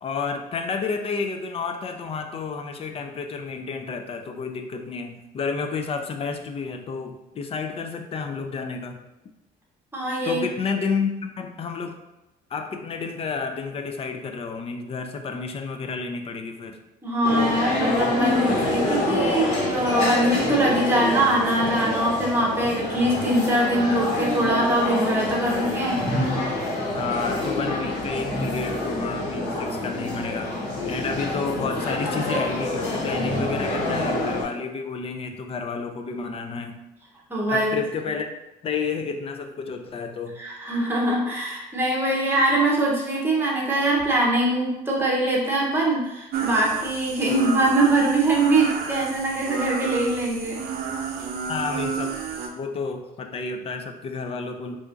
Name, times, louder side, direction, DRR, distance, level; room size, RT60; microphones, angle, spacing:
voice 1, 0.0-9.0 10.3-12.0 12.5-16.8 26.9-30.5 30.9-36.8 37.5-38.3 38.6-40.4 47.3-47.4 51.5-52.2 52.6-54.8, left 5 dB, 35° left, 5 dB, 0.4 m, -30 dB
voice 2, 9.9-10.4 17.0-26.0 37.3-37.7 40.4-50.6, right 1 dB, 15° right, -3 dB, 0.9 m, -23 dB
sound 1, 17.2-34.4, left 2 dB, 90° left, 1.1 m, -26 dB
sound 2, 46.3-52.5, right 5 dB, 65° right, 0.5 m, -31 dB
4.1 x 2.5 x 2.5 m, 0.99 s
cardioid pair, 110°, 17 cm